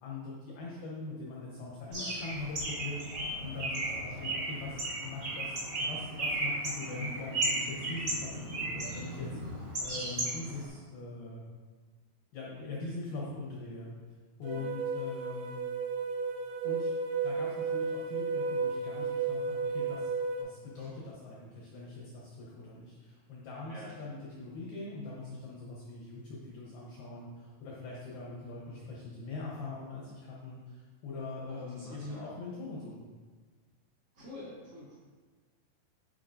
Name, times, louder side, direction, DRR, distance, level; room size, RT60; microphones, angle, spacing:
voice 1, 0.0-8.3 8.6-9.4 9.8-11.5 12.3-13.9 14.4-15.6 16.6-16.9 17.2-33.1, left 3 dB, 85° left, -5 dB, 2.1 m, -42 dB
Bird, 1.9-10.7, right 2 dB, 55° right, 1.1 m, -35 dB
sound 1, 14.4-20.4, right 4 dB, 90° right, 3.5 m, -33 dB
voice 2, 31.5-32.3 34.1-34.9, left 1 dB, 70° right, -10 dB, 1.3 m, -47 dB
12.0 x 4.5 x 2.6 m, 1.4 s
omnidirectional pair, 5.9 m